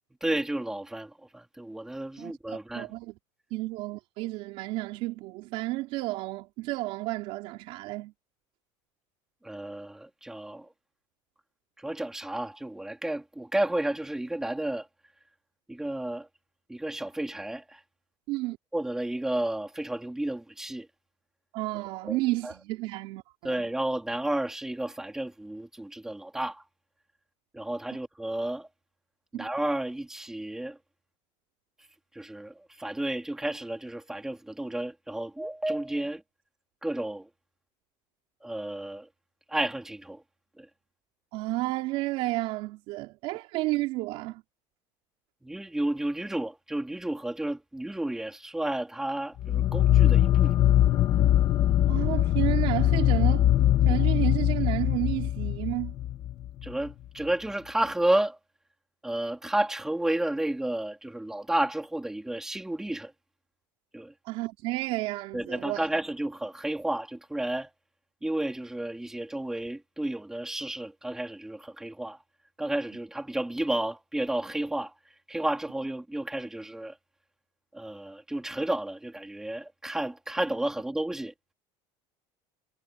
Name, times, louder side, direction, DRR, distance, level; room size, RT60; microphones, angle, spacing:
voice 1, 0.2-2.9 9.4-10.7 11.8-14.9 15.7-16.3 16.7-17.8 18.7-20.9 22.1-22.2 22.4-22.5 23.4-26.6 27.5-28.7 29.3-30.8 32.1-36.2 36.8-37.3 38.4-39.1 39.5-40.2 40.6-40.7 45.4-50.5 56.6-58.4 59.0-63.1 63.9-64.1 65.3-67.7 68.2-72.2 72.6-74.9 75.3-76.9 77.7-81.3, right 1 dB, 5° right, 3.3 m, -32 dB
voice 2, 2.2-3.2 3.5-8.1 18.3-18.6 21.5-23.7 29.3-29.5 41.3-44.4 51.9-53.5 53.8-56.0 64.2-65.9, right 20 dB, 55° right, 4.1 m, -32 dB
sound 1, 49.4-56.7, left 12 dB, 35° left, 2.5 m, -22 dB
cardioid pair, 165°, 12 cm